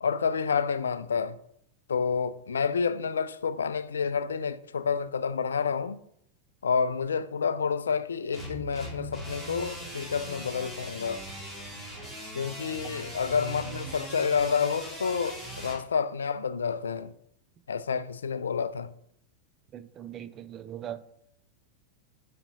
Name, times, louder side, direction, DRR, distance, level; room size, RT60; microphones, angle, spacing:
voice 1, 0.0-1.4 1.9-6.0 6.6-11.2 12.3-17.1 17.7-18.9, left 6 dB, 70° left, 0.3 m, -29 dB
sound 1, 8.3-15.8, equal, 5° right, 2.5 m, -40 dB
voice 2, 19.7-21.1, right 10 dB, 30° right, 0.5 m, -40 dB
7.0 x 5.1 x 4.0 m
figure-of-eight pair, 90°, 0 cm